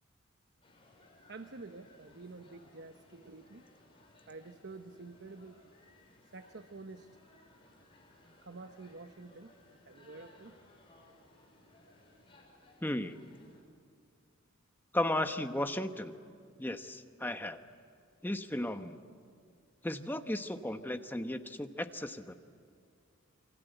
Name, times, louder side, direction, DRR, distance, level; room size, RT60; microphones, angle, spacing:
sound 1, 0.6-13.6, left 2 dB, 25° left, 6.0 m, -62 dB
voice 1, 1.3-3.6 4.3-5.6 6.2-7.1 8.4-9.5 9.9-10.6, right 3 dB, 55° right, 8 dB, 1.0 m, -49 dB
voice 2, 12.8-13.2 14.9-16.1 16.6-17.6 18.2-19.0 19.8-22.3, left 1 dB, 10° left, 7 dB, 1.0 m, -35 dB
28.0 x 24.5 x 8.1 m, 2.3 s
head